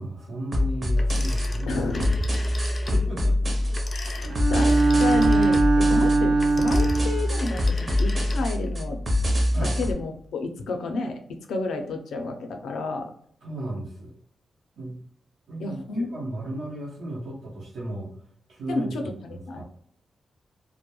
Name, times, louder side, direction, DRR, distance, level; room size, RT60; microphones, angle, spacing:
voice 1, 0.0-1.8 2.5-3.5 4.2-4.3 9.5-9.7 13.4-14.1 14.8-14.9 15.5-18.1 18.5-18.9 19.3-19.6, right 1 dB, 90° right, -6 dB, 0.8 m, -35 dB
sound 1, 0.5-9.9, left 1 dB, 35° right, 0.6 m, -24 dB
Telephone, 1.0-3.0 3.7-8.7, left 2 dB, 25° left, 0.4 m, -39 dB
voice 2, 1.7-2.2 3.9-9.0 9.6-13.1 15.6-16.1 18.7-19.6, left 2 dB, 85° left, 5 dB, 0.4 m, -31 dB
Bowed string instrument, 4.3-7.4, right 3 dB, 75° right, 0.3 m, -21 dB
2.2 x 2.1 x 2.9 m, 0.64 s
wide cardioid pair, 135°, 0 cm